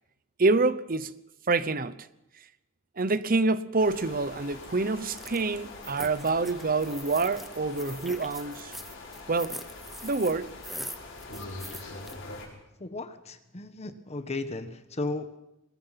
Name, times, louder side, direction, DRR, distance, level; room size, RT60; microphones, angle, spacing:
voice 1, 0.4-1.1 1.5-2.1 3.0-8.7 9.3-9.6 10.0-10.5, right 3 dB, 45° right, 0.9 m, -27 dB
sound 1, 3.8-12.5, left 2 dB, 65° left, 6.3 m, -44 dB
sound 2, 5.1-5.4 5.8-12.1, equal, ahead, 1.0 m, -43 dB
voice 2, 12.8-15.4, left 2 dB, 30° left, 1.2 m, -35 dB
23.5 x 20.5 x 5.9 m
head